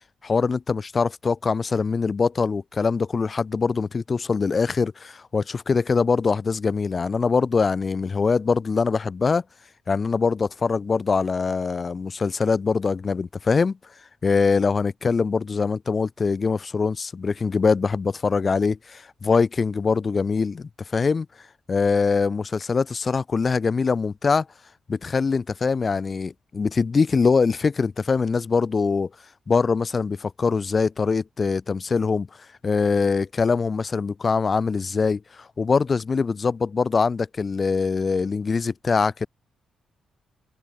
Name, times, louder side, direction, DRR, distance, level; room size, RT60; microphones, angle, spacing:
voice 1, 0.2-9.4 9.9-13.8 14.2-21.3 21.7-24.5 24.9-29.1 29.5-32.3 32.6-39.3, left 5 dB, 25° left, 0.7 m, -23 dB
open air
wide cardioid pair, 175°, 0 cm